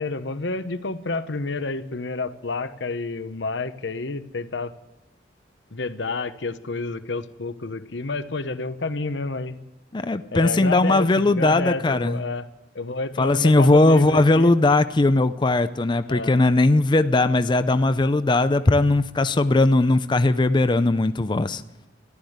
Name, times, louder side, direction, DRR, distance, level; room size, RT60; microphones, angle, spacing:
voice 1, 0.0-4.7 5.7-9.6 10.3-12.4 12.7-14.5 16.1-16.3, left 3 dB, 75° left, 12 dB, 1.0 m, -29 dB
voice 2, 9.9-12.2 13.2-21.6, left 2 dB, 25° left, 11 dB, 0.5 m, -19 dB
14.5 x 12.0 x 8.0 m, 0.96 s
head